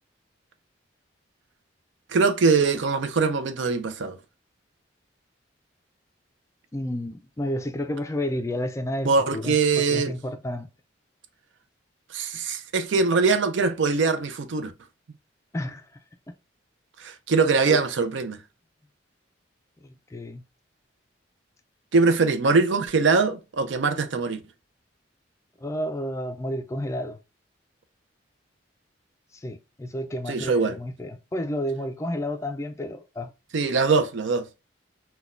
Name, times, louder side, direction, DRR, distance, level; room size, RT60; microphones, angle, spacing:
voice 1, 2.1-4.2 9.0-10.1 12.1-14.7 17.0-18.4 21.9-24.4 30.3-30.8 33.5-34.5, right 4 dB, 75° right, 0.5 m, -22 dB
voice 2, 6.7-9.6 9.9-10.7 15.5-15.9 17.7-17.8 19.8-20.4 25.6-27.2 29.3-33.3, left 1 dB, 15° left, 0.3 m, -31 dB
3.9 x 2.2 x 2.4 m
head